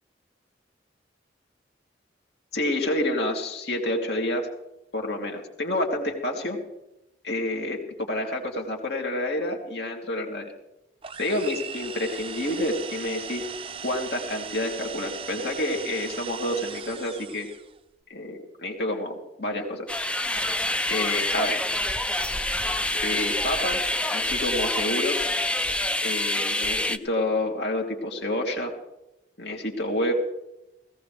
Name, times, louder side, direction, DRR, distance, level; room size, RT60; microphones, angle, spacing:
voice 1, 2.5-4.5 4.9-6.6 7.2-10.5 11.2-13.4 13.8-17.5 18.1-19.9 20.9-21.6 23.0-23.8 24.1-25.2 26.0-28.7 29.4-30.1, left 1 dB, 65° left, 1 dB, 3.0 m, -28 dB
sound 1, 11.0-17.7, right 6 dB, 30° right, 0.7 m, -38 dB
sound 2, 19.9-27.0, left 1 dB, 5° left, 0.5 m, -26 dB
18.0 x 17.5 x 3.4 m, 0.92 s
head